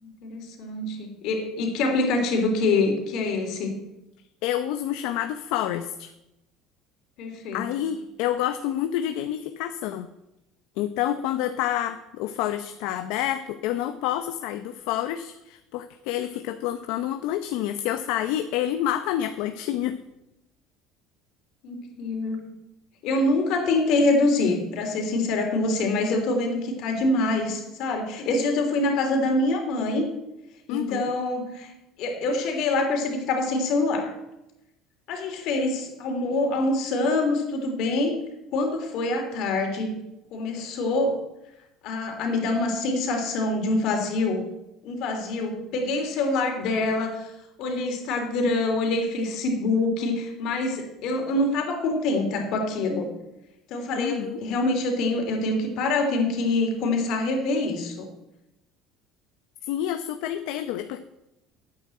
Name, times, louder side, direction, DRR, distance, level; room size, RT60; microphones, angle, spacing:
voice 1, 0.0-3.7 7.2-7.9 21.6-22.5 23.0-30.1 30.7-31.7 32.0-34.1 35.1-38.2 38.5-40.0 40.3-41.2 41.8-44.4 44.8-47.3 47.6-53.1 53.7-58.1, left 2 dB, 55° left, 3 dB, 3.2 m, -25 dB
voice 2, 4.4-6.1 7.5-10.1 10.8-20.0 30.7-31.1 53.9-54.4 59.7-61.0, left 11 dB, 75° left, 9 dB, 0.7 m, -28 dB
9.7 x 8.8 x 7.7 m, 0.90 s
cardioid pair, 155°, 0 cm